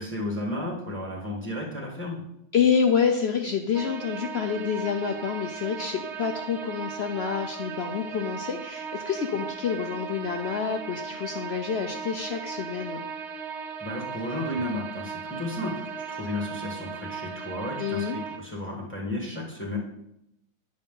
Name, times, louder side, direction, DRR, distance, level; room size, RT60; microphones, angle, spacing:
voice 1, 0.0-2.2 13.8-19.8, left 1 dB, 5° left, -3 dB, 1.4 m, -33 dB
voice 2, 2.5-13.0 17.8-18.2, left 7 dB, 75° left, 4 dB, 0.6 m, -27 dB
sound 1, 3.7-18.4, right 6 dB, 60° right, 0.8 m, -37 dB
9.8 x 6.4 x 3.8 m, 0.79 s
omnidirectional pair, 1.9 m